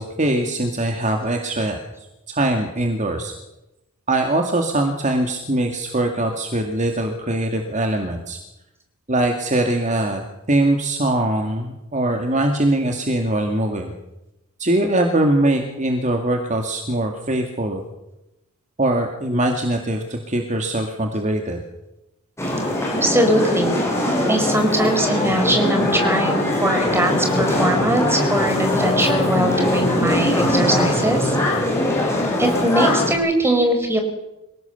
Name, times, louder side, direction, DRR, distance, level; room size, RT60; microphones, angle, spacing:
voice 1, 0.0-1.8 2.3-3.3 4.1-8.4 9.1-10.2 10.5-13.9 14.6-17.8 18.8-21.6, right 1 dB, 35° right, 3 dB, 2.2 m, -22 dB
sound 1, 22.4-33.1, left 1 dB, 10° left, 7.1 m, -21 dB
voice 2, 23.0-23.8 24.3-31.4 32.4-34.0, right 1 dB, 10° right, 4 dB, 4.9 m, -21 dB
27.0 x 18.0 x 7.0 m, 0.95 s
head